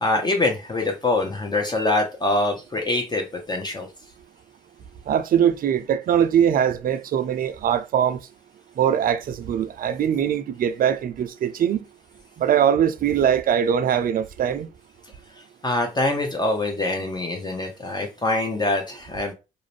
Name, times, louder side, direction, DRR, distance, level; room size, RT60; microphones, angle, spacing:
voice 1, 0.0-3.9 15.6-19.3, left 2 dB, 20° left, 0.6 m, -24 dB
voice 2, 5.1-8.2 8.8-11.8 12.4-14.7, right 9 dB, 50° right, 0.4 m, -21 dB
2.4 x 2.1 x 3.1 m
hypercardioid pair, 40°, 19 cm